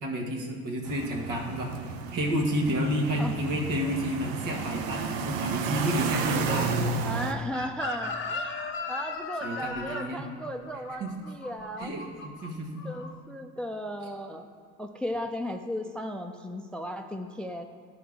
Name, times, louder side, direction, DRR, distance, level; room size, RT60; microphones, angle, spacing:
voice 1, 0.0-6.9 9.4-10.2 11.0-11.1 11.8-12.9, equal, 70° right, 1 dB, 1.5 m, -30 dB
sound 1, 0.9-7.3, right 6 dB, 90° right, 0.6 m, -32 dB
voice 2, 7.0-8.6 8.9-11.9 12.8-14.5 14.8-17.6, equal, 5° left, 6 dB, 0.3 m, -36 dB
Chicken rooster, 7.5-12.5 12.8-13.1, left 4 dB, 35° left, 0.7 m, -36 dB
11.0 x 4.7 x 3.6 m, 2.2 s
supercardioid pair, 90°, 33 cm